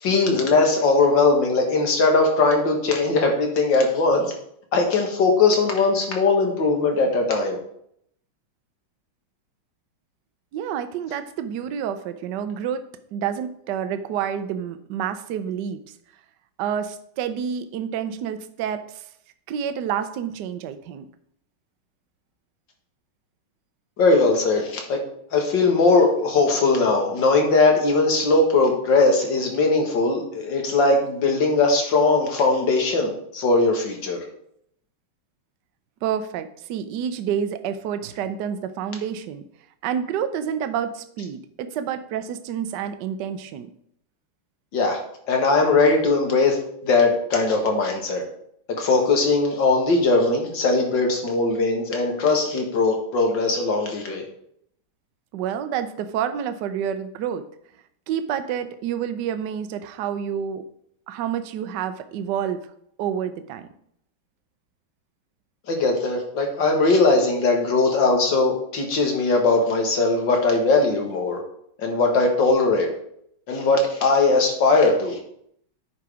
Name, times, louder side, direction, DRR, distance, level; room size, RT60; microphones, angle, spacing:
voice 1, 0.0-4.3 4.7-7.6 24.0-25.0 25.3-34.2 44.7-45.0 45.3-46.6 46.8-48.2 48.8-54.2 65.7-71.4 71.8-72.9 73.5-75.2, left 3 dB, 60° left, 2 dB, 2.3 m, -20 dB
voice 2, 10.5-12.8 13.1-15.8 16.6-19.0 19.5-21.1 36.0-39.4 39.8-43.7 55.3-57.4 58.1-60.6 61.1-62.6 63.0-63.7, right 8 dB, 65° right, 10 dB, 1.2 m, -28 dB
9.4 x 5.1 x 4.9 m, 0.70 s
omnidirectional pair, 2.3 m